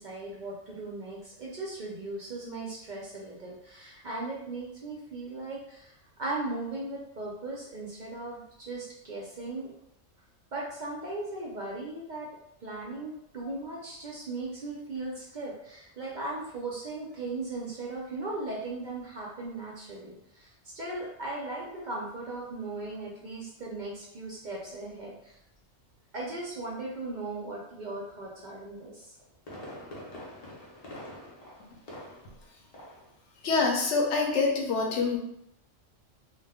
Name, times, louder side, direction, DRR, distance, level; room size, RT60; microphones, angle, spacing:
voice 1, 0.0-9.7 10.5-12.3 12.6-25.4 26.1-29.1, right 2 dB, 55° right, -3 dB, 0.5 m, -38 dB
Fireworks, 29.0-32.4 32.7-33.1 33.4-33.5, left 1 dB, 45° left, 0.5 m, -45 dB
voice 2, 33.4-35.2, left 4 dB, 65° left, 0 dB, 0.9 m, -25 dB
2.3 x 2.2 x 3.4 m, 0.77 s
omnidirectional pair, 1.4 m